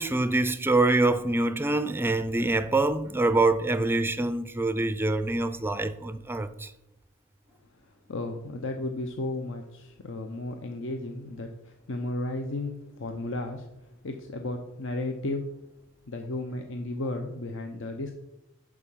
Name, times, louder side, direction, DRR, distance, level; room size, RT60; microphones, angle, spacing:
voice 1, 0.0-6.7, right 2 dB, 10° right, 0.4 m, -25 dB
voice 2, 8.1-13.7 14.0-15.5 16.1-18.1, left 2 dB, 65° left, 0.8 m, -34 dB
11.0 x 4.9 x 5.6 m
head